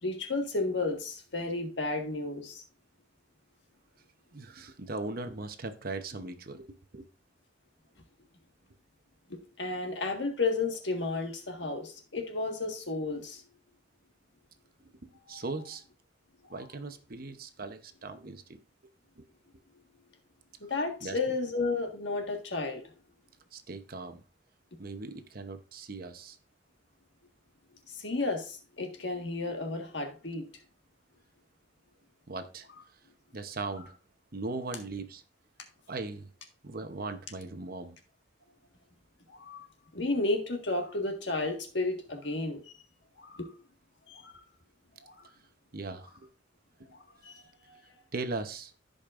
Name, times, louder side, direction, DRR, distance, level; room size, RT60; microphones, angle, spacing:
voice 1, 0.0-2.6 9.3-13.4 15.3-15.4 20.7-22.8 27.9-30.5 39.3-39.7 39.9-42.6 43.2-43.5 44.1-44.3 45.0-45.3 47.2-47.4, left 3 dB, 65° left, 3 dB, 1.7 m, -32 dB
voice 2, 4.3-7.1 15.3-15.8 16.5-18.6 19.2-19.3 21.0-21.2 23.5-24.2 24.8-26.4 32.3-32.7 33.3-33.9 34.3-35.2 35.9-36.3 36.6-38.0 45.7-46.3 48.1-48.7, right 3 dB, 50° right, 9 dB, 0.9 m, -39 dB
15.0 x 5.3 x 2.5 m, 0.36 s
head